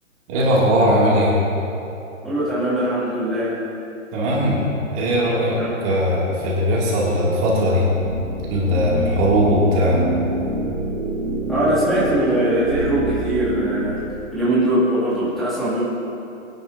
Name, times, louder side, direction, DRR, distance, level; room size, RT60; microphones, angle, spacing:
voice 1, 0.3-1.4 4.1-4.6 4.9-7.9 8.5-10.0, equal, 25° right, -5 dB, 2.5 m, -19 dB
voice 2, 2.2-3.6 5.6-6.0 11.5-15.8, right 1 dB, ahead, -13 dB, 2.4 m, -22 dB
sound 1, 8.0-14.0, right 2 dB, 50° right, 2.1 m, -26 dB
21.5 x 11.0 x 2.7 m, 2.9 s
hypercardioid pair, 155°, 39 cm